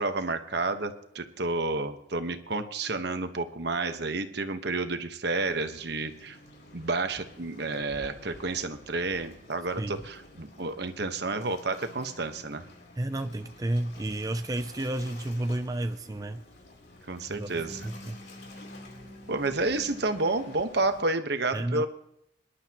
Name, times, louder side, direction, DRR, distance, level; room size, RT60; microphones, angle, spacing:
voice 1, 0.0-6.4 6.7-12.6 17.1-17.9 19.3-21.9, right 3 dB, 65° right, 8 dB, 1.2 m, -30 dB
Waves surf, 5.4-21.0, left 1 dB, 60° left, 3.5 m, -49 dB
voice 2, 13.0-16.4 17.3-17.5 17.8-18.2 21.5-21.9, right 1 dB, 20° right, 8 dB, 0.4 m, -31 dB
25.5 x 11.5 x 3.0 m, 0.77 s
head